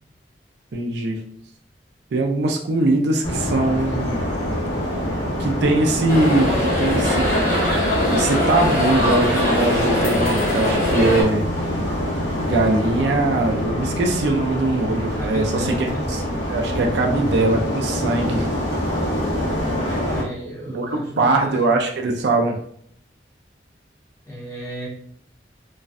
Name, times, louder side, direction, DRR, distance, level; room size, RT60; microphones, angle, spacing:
voice 1, 0.7-1.2 2.1-4.2 5.4-7.3 8.1-11.5 12.4-16.2 16.5-18.5 20.7-22.6, right 2 dB, 65° right, 2 dB, 0.4 m, -21 dB
sound 1, 3.2-20.2, equal, 75° left, 0.9 m, -25 dB
sound 2, 6.1-11.2, left 1 dB, 50° left, 0.8 m, -21 dB
voice 2, 15.1-16.1 20.1-21.6 24.3-24.9, equal, 15° left, -7 dB, 0.8 m, -33 dB
2.5 x 2.1 x 2.4 m, 0.64 s
head